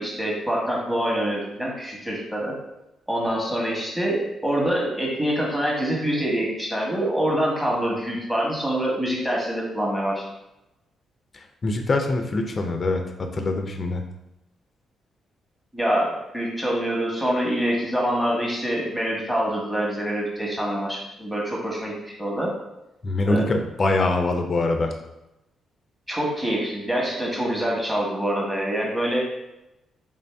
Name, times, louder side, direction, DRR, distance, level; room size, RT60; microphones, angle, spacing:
voice 1, 0.0-2.6 3.1-10.2 15.7-21.9 22.2-22.5 23.3-23.5 26.1-29.2, equal, 5° right, -3 dB, 1.1 m, -25 dB
voice 2, 11.3-14.0 23.0-24.9, left 2 dB, 35° left, 4 dB, 0.4 m, -24 dB
3.6 x 2.6 x 3.4 m, 0.92 s
cardioid pair, 95°, 0 cm